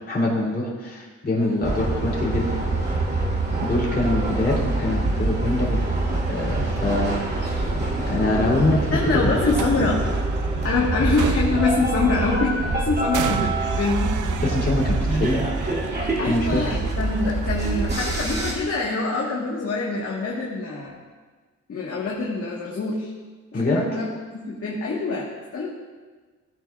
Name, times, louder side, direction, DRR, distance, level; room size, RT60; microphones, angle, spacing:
voice 1, 0.1-2.5 3.6-5.8 6.3-7.5 8.1-9.2 14.4-15.5 16.2-16.8 23.5-24.0, left 2 dB, 35° left, -5 dB, 3.4 m, -24 dB
sound 1, 1.4-18.5, right 8 dB, 80° right, 0.7 m, -37 dB
sound 2, 1.6-18.5, right 2 dB, 35° right, 2.6 m, -25 dB
voice 2, 8.9-10.0 10.6-14.1 16.2-21.0 21.7-23.1 23.5-24.1 24.3-25.3 25.5-25.7, left 3 dB, 50° left, -4 dB, 1.7 m, -25 dB
17.0 x 9.5 x 2.5 m, 1.4 s
wide cardioid pair, 130°, 30 cm